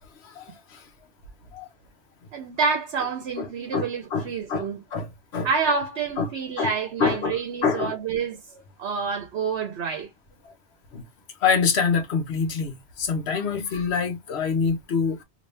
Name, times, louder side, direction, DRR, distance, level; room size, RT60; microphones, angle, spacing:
voice 1, 0.2-0.8 1.5-1.7 3.4-4.6 4.9-5.1 5.3-5.5 6.2-6.3 6.6-6.7 7.0-7.9 10.9-11.0 11.4-15.2, left 5 dB, 70° left, 1.1 m, -26 dB
voice 2, 2.3-4.8 5.4-8.4 8.8-10.1, right 5 dB, 70° right, 1.0 m, -28 dB
2.8 x 2.7 x 3.2 m
omnidirectional pair, 1.2 m